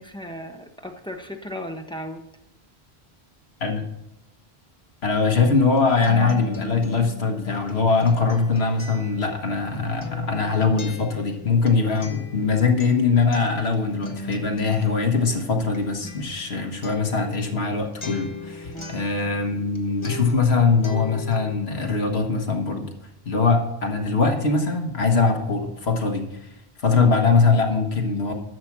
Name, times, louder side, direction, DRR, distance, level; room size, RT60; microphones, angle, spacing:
voice 1, 0.0-2.2 18.7-19.0, equal, 5° left, 4 dB, 1.0 m, -36 dB
voice 2, 5.0-22.9 23.2-26.3 26.8-28.3, left 4 dB, 70° left, 4 dB, 1.6 m, -22 dB
Acoustic guitar, 5.5-19.8 20.0-21.5, left 3 dB, 30° left, 1.1 m, -39 dB
11.0 x 7.2 x 6.1 m, 0.86 s
omnidirectional pair, 1.1 m